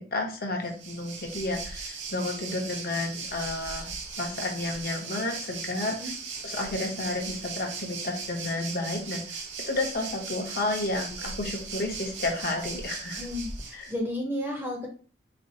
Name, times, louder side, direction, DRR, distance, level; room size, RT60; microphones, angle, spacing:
voice 1, 0.0-3.9 4.2-6.0 6.4-13.2 13.7-13.8, left 2 dB, 50° left, 2 dB, 0.7 m, -31 dB
Waves surf, 0.6-13.9, right 5 dB, 70° right, 0.8 m, -38 dB
voice 2, 13.2-14.9, left 1 dB, 10° right, 0 dB, 0.6 m, -32 dB
4.2 x 2.4 x 2.7 m, 0.40 s
head